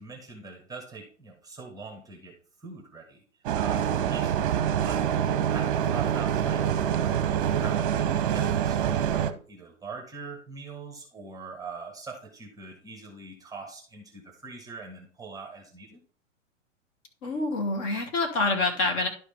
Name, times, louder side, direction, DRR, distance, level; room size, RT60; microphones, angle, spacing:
voice 1, 0.0-3.2 3.5-16.0, right 4 dB, 10° right, 2 dB, 1.4 m, -43 dB
Bus, 3.4-9.3, right 9 dB, 45° right, 0.9 m, -26 dB
voice 2, 17.2-19.1, left 2 dB, 35° left, 2 dB, 2.5 m, -26 dB
11.5 x 4.8 x 3.6 m, 0.42 s
figure-of-eight pair, 110°, 37 cm